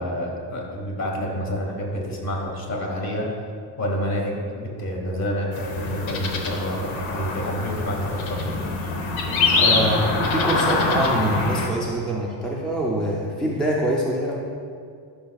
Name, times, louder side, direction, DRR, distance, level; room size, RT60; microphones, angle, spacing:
voice 1, 0.0-3.3 3.8-8.5, equal, 35° left, -1 dB, 1.4 m, -28 dB
sound 1, 5.5-11.7, left 3 dB, 80° left, 1.1 m, -24 dB
voice 2, 9.6-14.4, right 1 dB, ahead, -4 dB, 0.4 m, -24 dB
12.0 x 5.9 x 2.3 m, 2.3 s
cardioid pair, 170°, 46 cm